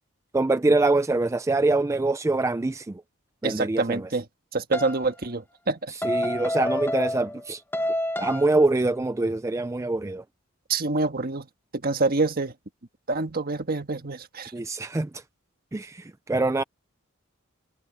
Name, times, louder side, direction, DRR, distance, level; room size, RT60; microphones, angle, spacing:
voice 1, 0.3-3.0 3.4-4.1 5.9-7.6 8.2-10.2 14.5-15.2 15.7-16.6, right 2 dB, 15° right, 0.3 m, -24 dB
voice 2, 3.4-4.2 4.5-5.9 10.7-11.5 11.7-12.5 13.1-14.5, right 3 dB, 45° right, 1.5 m, -26 dB
sound 1, 4.7-5.0 6.0-7.4 7.7-8.6, left 1 dB, 10° left, 1.0 m, -28 dB
head